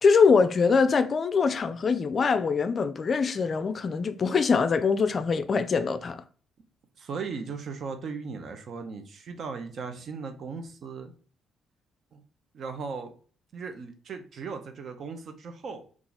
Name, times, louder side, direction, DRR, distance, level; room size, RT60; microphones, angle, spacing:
voice 1, 0.0-6.2, left 5 dB, 45° left, 0.3 m, -23 dB
voice 2, 7.0-11.1 12.1-12.2 12.5-13.1 13.5-15.8, right 5 dB, 60° right, 0.6 m, -37 dB
2.9 x 2.4 x 3.8 m
supercardioid pair, 55°, 0 cm